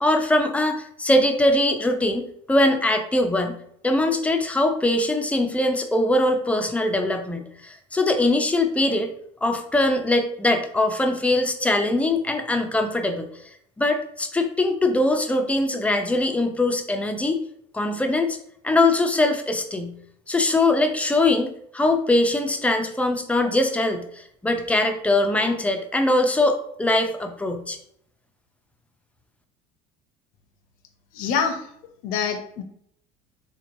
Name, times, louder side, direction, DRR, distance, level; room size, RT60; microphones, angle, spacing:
voice 1, 0.0-3.6 3.8-9.1 9.4-13.3 13.8-17.4 17.7-18.4 18.6-19.9 20.3-27.8, left 2 dB, 10° left, 5 dB, 0.4 m, -22 dB
voice 2, 31.1-31.6 32.0-32.6, left 6 dB, 65° left, 6 dB, 0.6 m, -25 dB
3.6 x 3.0 x 2.6 m, 0.70 s
supercardioid pair, 115°, 15 cm